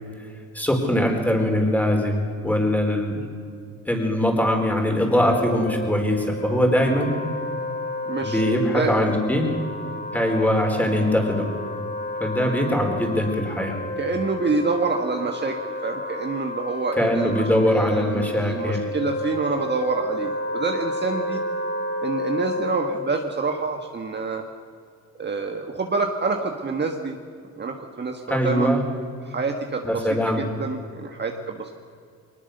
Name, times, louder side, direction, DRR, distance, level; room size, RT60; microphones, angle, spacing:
voice 1, 0.5-3.2 3.9-7.1 8.2-9.4 10.1-11.5 12.2-13.8 17.0-18.8 28.3-28.8 29.8-30.4, equal, 5° left, 2 dB, 4.6 m, -22 dB
Wind instrument woodwind instrument, 5.1-23.2, left 2 dB, 30° left, 3.0 m, -31 dB
voice 2, 8.1-8.4 8.7-9.1 14.0-17.4 17.7-21.4 22.0-24.4 25.2-27.2 27.6-28.7 29.2-31.7, right 4 dB, 35° right, 3 dB, 1.6 m, -27 dB
22.0 x 20.0 x 6.8 m, 2.3 s
cardioid pair, 90°, 30 cm